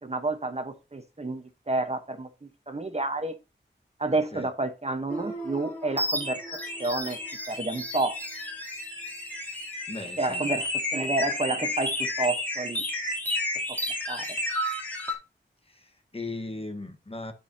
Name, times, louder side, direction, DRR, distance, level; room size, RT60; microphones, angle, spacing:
voice 1, 0.0-3.4 4.0-6.4 6.8-7.2 7.5-8.2 10.2-12.8 14.1-14.2, right 2 dB, 35° right, 1.1 m, -30 dB
sound 1, 5.1-15.1, left 1 dB, 10° left, 3.1 m, -32 dB
voice 2, 9.9-10.5 15.7-17.3, left 2 dB, 30° left, 1.3 m, -38 dB
11.5 x 5.3 x 2.8 m
wide cardioid pair, 70°, 19 cm